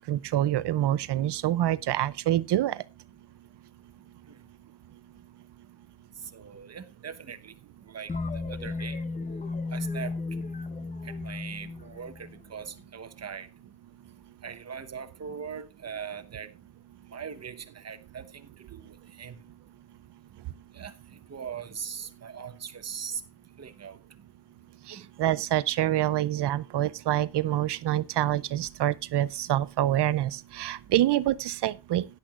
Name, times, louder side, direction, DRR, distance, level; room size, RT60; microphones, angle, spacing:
voice 1, 0.0-2.8 24.9-32.1, right 13 dB, 75° right, 0.6 m, -26 dB
voice 2, 6.3-7.5 7.9-8.1 8.5-9.0 9.7-10.1 11.2-13.5 14.4-16.5 17.1-19.4 20.7-20.9 21.3-23.2 23.6-24.0 24.9-25.1, right 7 dB, 40° right, 1.1 m, -40 dB
sound 1, 8.1-12.8, left 3 dB, 20° left, 0.7 m, -34 dB
16.0 x 10.5 x 2.4 m
wide cardioid pair, 130°, 41 cm